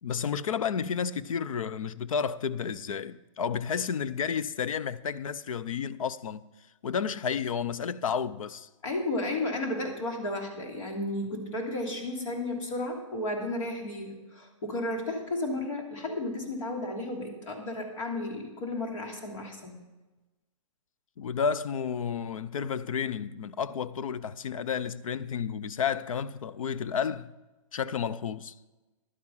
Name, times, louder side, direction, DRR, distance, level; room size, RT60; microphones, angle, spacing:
voice 1, 0.0-6.4 6.8-8.7 21.2-27.3 27.7-28.5, left 7 dB, 90° left, 0.6 m, -31 dB
voice 2, 8.8-19.7, left 2 dB, 70° left, 3.1 m, -33 dB
11.5 x 9.6 x 5.5 m
hypercardioid pair, 155°, 17 cm